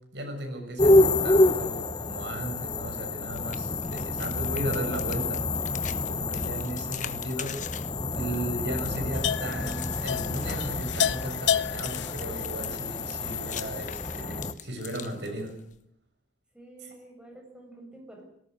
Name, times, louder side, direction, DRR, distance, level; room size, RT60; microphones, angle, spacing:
voice 1, 0.1-5.5 6.1-7.6 8.1-15.5 16.8-16.9, right 1 dB, 70° right, 4 dB, 6.9 m, -36 dB
sound 1, 0.8-14.5, left 2 dB, 25° left, 1.0 m, -28 dB
sound 2, 3.3-15.8, left 9 dB, 45° left, 1.2 m, -44 dB
sound 3, 9.1-14.2, left 8 dB, 90° left, 0.8 m, -32 dB
voice 2, 16.5-18.3, right 1 dB, 5° right, 2 dB, 7.2 m, -49 dB
19.0 x 18.5 x 9.6 m, 0.72 s
head